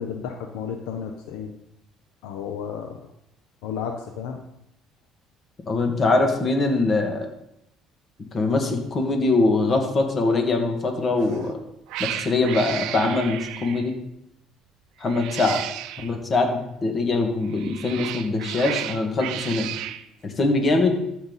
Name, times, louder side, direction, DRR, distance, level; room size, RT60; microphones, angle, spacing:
voice 1, 0.0-1.5 2.2-3.0 3.6-4.4, left 7 dB, 85° left, 5 dB, 0.9 m, -32 dB
voice 2, 5.7-7.3 8.3-11.6 12.0-13.9 15.0-15.6 16.0-19.7 20.2-21.0, left 3 dB, 35° left, 3 dB, 2.1 m, -22 dB
Cat, 11.2-11.5 11.9-13.9 15.0-16.1 17.4-20.0, right 12 dB, 75° right, 0.6 m, -33 dB
13.5 x 5.8 x 4.2 m, 0.80 s
supercardioid pair, 95°, 0 cm